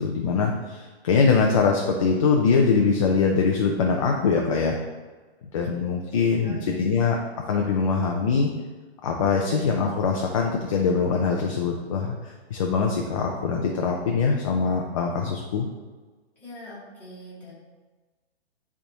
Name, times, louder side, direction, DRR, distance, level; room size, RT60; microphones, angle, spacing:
voice 1, 0.0-4.8 5.5-7.2 7.5-8.5 9.0-15.7, left 5 dB, 30° left, 0 dB, 0.5 m, -23 dB
voice 2, 6.4-6.9 16.4-17.5, left 1 dB, 5° left, -10 dB, 1.8 m, -43 dB
10.5 x 3.5 x 2.9 m, 1.3 s
hypercardioid pair, 160°, 32 cm